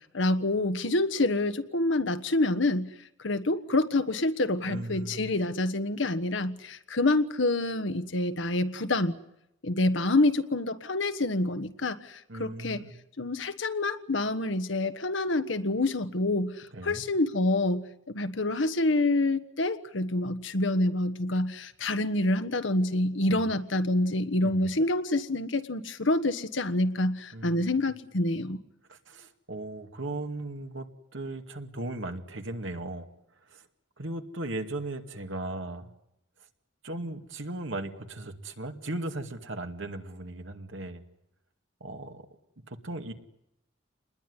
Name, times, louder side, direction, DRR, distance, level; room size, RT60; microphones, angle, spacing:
voice 1, 0.1-2.9 3.2-9.2 9.6-12.8 13.2-28.6, left 2 dB, 80° left, 11 dB, 1.4 m, -27 dB
voice 2, 4.6-5.3 12.3-12.9 16.7-17.1 23.3-23.5 24.4-24.7 27.3-27.7 28.9-33.1 33.5-33.6 34.0-35.9 36.8-41.0 41.8-42.3 42.7-43.1, right 2 dB, 85° right, 6 dB, 2.3 m, -37 dB
27.5 x 20.5 x 9.9 m, 0.85 s
head